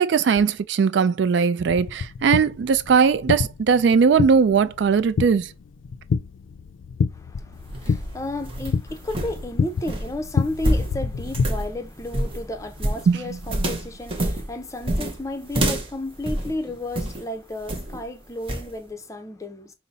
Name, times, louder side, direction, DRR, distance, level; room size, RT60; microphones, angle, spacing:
voice 1, 0.0-5.5 13.1-13.2 13.6-13.7, right 6 dB, 60° right, 0.3 m, -19 dB
sound 1, 1.7-11.5, left 5 dB, 85° left, 0.4 m, -28 dB
voice 2, 7.1-19.7, left 1 dB, 15° left, 0.6 m, -33 dB
sound 2, 7.5-17.2 17.7-18.0 18.5-18.7, right 1 dB, 30° right, 0.7 m, -28 dB
5.4 x 2.0 x 4.0 m
head